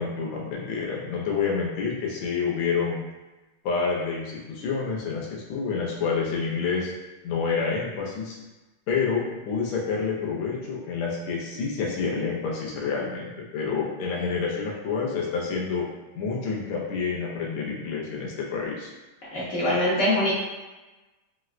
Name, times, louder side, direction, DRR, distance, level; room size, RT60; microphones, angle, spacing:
voice 1, 0.0-3.0 3.6-6.9 7.2-8.4 8.9-15.9 16.2-18.9, left 5 dB, 85° left, -3 dB, 1.5 m, -28 dB
voice 2, 19.3-20.3, left 1 dB, 65° left, -9 dB, 0.7 m, -23 dB
4.2 x 2.1 x 2.4 m, 1.1 s
omnidirectional pair, 2.4 m